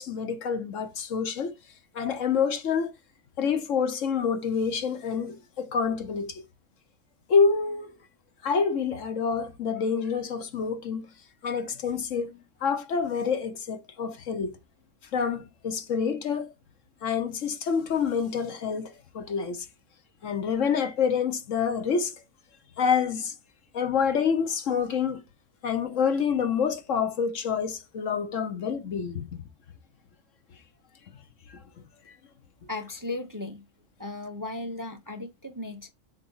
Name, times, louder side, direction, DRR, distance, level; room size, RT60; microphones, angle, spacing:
voice 1, 0.0-1.5 1.9-2.9 3.4-6.4 7.3-8.0 8.4-11.1 11.4-14.5 15.1-16.5 17.0-19.6 20.2-22.1 22.8-23.3 23.7-25.2 25.6-29.4 31.5-31.6, left 6 dB, 65° left, 1.3 m, -27 dB
voice 2, 32.7-33.6 34.0-35.9, left 2 dB, 20° right, 0.7 m, -36 dB
7.8 x 3.4 x 5.6 m
omnidirectional pair, 1.4 m